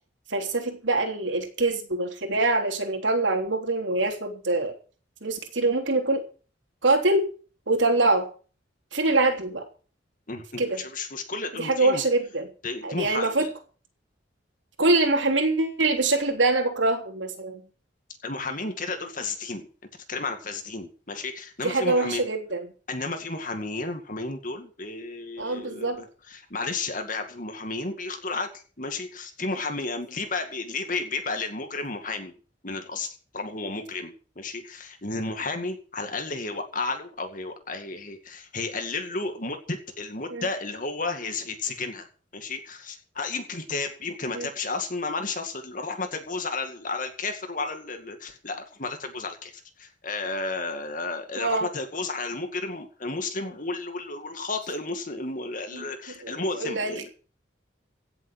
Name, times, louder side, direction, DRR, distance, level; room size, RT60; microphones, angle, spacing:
voice 1, 0.3-4.7 5.2-6.2 6.8-7.3 7.7-8.3 8.9-9.7 10.6-10.8 11.6-12.5 12.8-13.5 14.8-17.6 21.6-22.7 25.4-26.0 40.3-40.5 44.3-44.5 51.4-51.7 55.7-55.9 56.2-57.1, right 2 dB, 80° right, 4 dB, 3.4 m, -24 dB
voice 2, 10.3-12.0 12.6-13.5 18.2-19.7 20.1-22.2 22.9-28.5 28.8-32.3 32.6-33.1 33.3-42.1 42.3-49.5 49.8-57.1, left 3 dB, 45° left, 6 dB, 2.2 m, -32 dB
16.5 x 7.5 x 7.6 m, 0.39 s
head